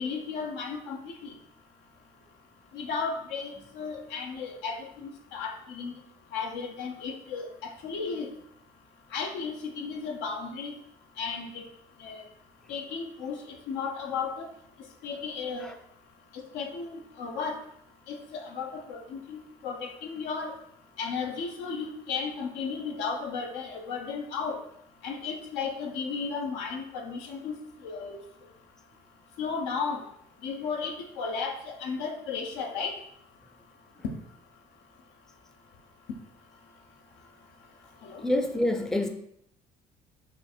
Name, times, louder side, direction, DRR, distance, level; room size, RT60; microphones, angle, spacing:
voice 1, 0.0-1.3 2.7-5.9 6.3-8.3 9.1-10.7 11.2-11.6 12.0-12.2 12.7-13.4 13.7-14.5 15.0-15.7 16.3-17.6 18.1-20.5 21.0-24.6 25.0-27.6 27.8-28.2 29.4-30.0 30.4-32.9 38.0-38.2, left 5 dB, 90° left, 2 dB, 0.8 m, -34 dB
voice 2, 38.2-39.1, left 1 dB, 5° left, 6 dB, 0.4 m, -26 dB
4.8 x 2.5 x 4.3 m, 0.71 s
cardioid pair, 100°, 18 cm